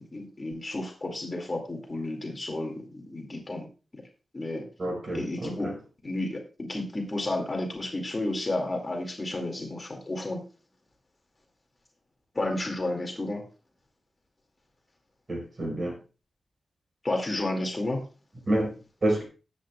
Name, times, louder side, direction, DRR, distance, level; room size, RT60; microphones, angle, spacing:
voice 1, 0.1-3.7 3.9-4.0 4.3-4.7 5.1-5.7 6.0-10.4 12.3-13.4 17.0-18.0, left 2 dB, 25° left, 2 dB, 2.1 m, -32 dB
voice 2, 4.8-5.7 15.3-15.9 18.5-18.7 19.0-19.2, right 1 dB, 40° right, 1 dB, 4.4 m, -28 dB
18.5 x 8.4 x 2.3 m, 0.33 s
wide cardioid pair, 140°, 0 cm